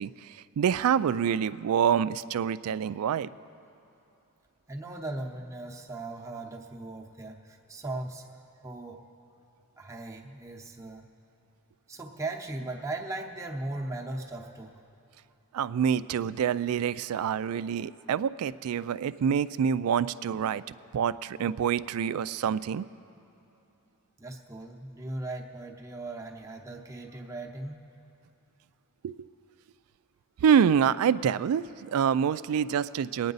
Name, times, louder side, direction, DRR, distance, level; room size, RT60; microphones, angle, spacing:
voice 1, 0.0-3.3 15.5-20.6 20.9-22.9 29.0-29.3 30.4-33.3, right 8 dB, 85° right, 16 dB, 0.3 m, -26 dB
voice 2, 4.7-8.3 8.6-9.0 9.8-11.0 11.9-14.8 24.2-27.9, right 2 dB, 15° right, 0 dB, 0.7 m, -38 dB
22.5 x 9.4 x 4.0 m, 2.8 s
head